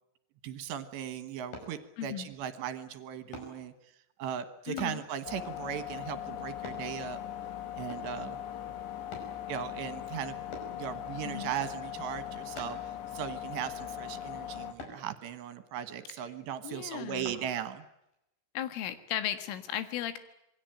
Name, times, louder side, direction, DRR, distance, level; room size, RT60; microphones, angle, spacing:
voice 1, 0.4-3.7 4.2-7.2 7.8-8.4 9.5-10.4 10.8-17.8, right 9 dB, 70° right, 11 dB, 3.2 m, -38 dB
sound 1, 1.5-1.8 3.3-3.6 4.8-5.0 6.6-6.9 7.9-8.2 9.1-9.4 10.5-10.8 12.6-12.9 14.8-15.0 17.3-17.4 18.0-18.1, left 2 dB, 45° left, 6.8 m, -43 dB
voice 2, 2.0-2.3 4.7-5.0 11.3-11.5 16.6-17.4 18.6-20.2, left 11 dB, 85° left, 10 dB, 4.3 m, -36 dB
sound 2, 5.3-14.7, left 11 dB, 65° left, 4.3 m, -40 dB
27.0 x 21.0 x 9.0 m, 0.83 s
omnidirectional pair, 5.6 m